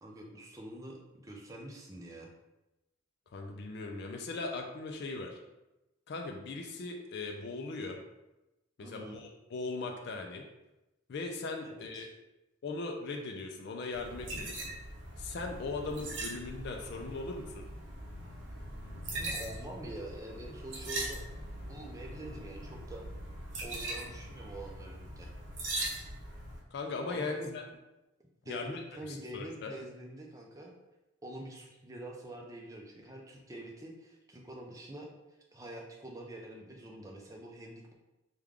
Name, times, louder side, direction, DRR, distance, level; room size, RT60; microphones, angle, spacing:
voice 1, 0.0-2.3 8.8-9.2 11.6-12.1 19.1-21.2 21.7-23.0 23.6-25.3 27.1-27.5 28.4-30.7 31.2-35.1 35.5-37.9, right 1 dB, 15° right, 0 dB, 0.4 m, -45 dB
voice 2, 3.3-5.4 6.1-8.0 8.8-10.4 11.1-12.1 12.6-14.6 15.2-17.7 26.7-27.6 28.5-28.7 29.1-29.7, left 3 dB, 50° left, 2 dB, 0.3 m, -39 dB
sound 1, 13.9-26.6, right 1 dB, 60° right, 0.7 m, -41 dB
3.2 x 2.3 x 3.6 m, 0.98 s
head